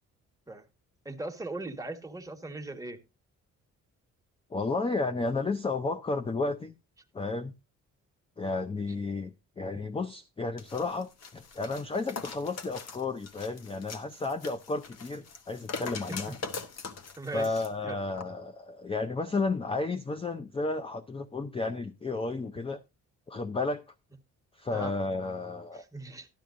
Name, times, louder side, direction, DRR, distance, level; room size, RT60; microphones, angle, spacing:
voice 1, 1.0-3.0 17.2-18.0 24.7-24.9 25.7-26.3, right 2 dB, 10° right, 1.4 m, -39 dB
voice 2, 4.5-6.7 7.1-7.5 8.4-16.4 17.3-22.8 23.3-23.8 24.5-25.8, left 3 dB, 20° left, 0.5 m, -32 dB
sound 1, 10.6-17.7 18.1-18.3, left 4 dB, 55° left, 1.2 m, -42 dB
12.0 x 11.5 x 2.5 m
cardioid pair, 90°, 30 cm